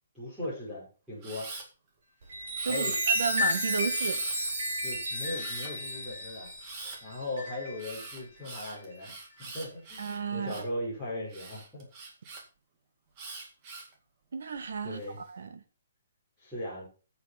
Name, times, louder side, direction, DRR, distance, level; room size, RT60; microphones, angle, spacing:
voice 1, 0.1-1.5 2.7-3.0 4.8-6.5 7.0-9.1 9.4-11.9 14.8-15.2 16.4-16.9, left 1 dB, 5° right, -9 dB, 5.4 m, -38 dB
Camera, 1.2-1.7 2.5-3.3 3.9-4.5 5.3-5.7 6.6-7.0 7.8-10.7 11.3-12.4 13.2-13.9 14.6-15.1, right 3 dB, 20° right, 2.1 m, -44 dB
Chime, 2.2-8.2 8.8-9.0, equal, 45° right, 6.4 m, -32 dB
voice 2, 2.6-4.2 10.0-10.6 14.3-15.6, right 6 dB, 65° right, 8 dB, 1.6 m, -33 dB
9.6 x 8.3 x 5.8 m, 0.35 s
hypercardioid pair, 175°, 0 cm